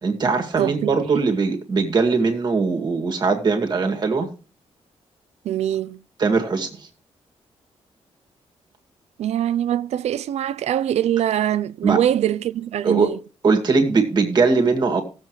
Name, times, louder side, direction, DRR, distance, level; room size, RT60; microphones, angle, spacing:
voice 1, 0.0-4.3 6.2-6.9 11.8-12.0 12.8-13.1 13.4-15.0, right 4 dB, 40° right, 2.0 m, -20 dB
voice 2, 0.6-1.3 5.4-6.0 9.2-13.2, right 11 dB, 80° right, 0.4 m, -23 dB
18.0 x 7.4 x 3.2 m
wide cardioid pair, 155°, 11 cm